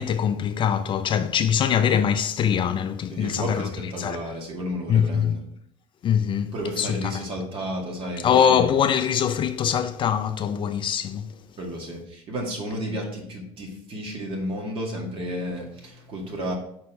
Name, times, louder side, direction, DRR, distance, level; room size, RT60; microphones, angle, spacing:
voice 1, 0.0-3.7 4.0-4.3 4.9-5.4 6.0-7.1 8.2-11.3, left 8 dB, 40° left, 0.4 m, -23 dB
voice 2, 3.1-5.4 6.5-8.3 11.6-16.5, equal, 40° right, 1.9 m, -32 dB
5.4 x 4.3 x 4.1 m
supercardioid pair, 100°, 14 cm